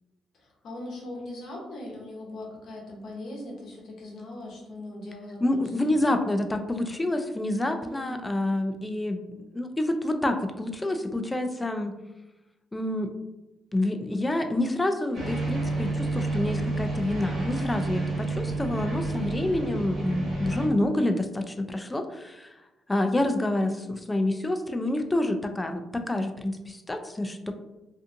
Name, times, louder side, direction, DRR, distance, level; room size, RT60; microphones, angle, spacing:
voice 1, 0.3-6.2 7.7-8.2, left 1 dB, 65° left, -2 dB, 0.8 m, -40 dB
voice 2, 5.4-9.2 9.5-11.9 12.7-13.1 13.7-22.5 22.9-27.5, left 1 dB, 15° left, 6 dB, 0.3 m, -28 dB
sound 1, 15.1-20.7, right 2 dB, 50° right, 1.1 m, -30 dB
2.5 x 2.5 x 2.5 m, 0.99 s
cardioid pair, 90°, 0 cm